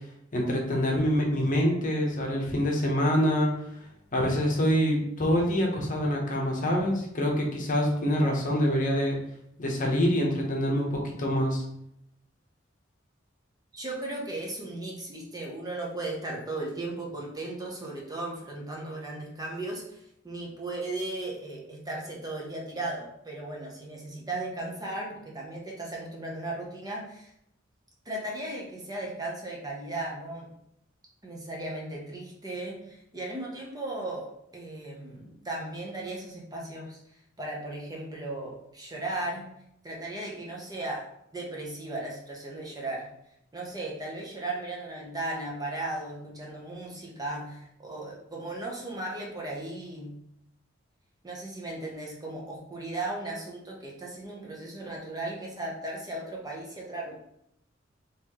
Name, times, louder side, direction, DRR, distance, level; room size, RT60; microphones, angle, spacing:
voice 1, 0.3-3.5 4.1-9.2 9.6-11.6, equal, 45° left, 0 dB, 0.9 m, -25 dB
voice 2, 13.7-27.3 28.0-30.5 31.2-37.0 37.4-39.5 39.8-43.1 43.5-50.2 51.2-57.1, right 2 dB, 20° right, -2 dB, 0.8 m, -36 dB
4.1 x 3.1 x 3.0 m, 0.76 s
head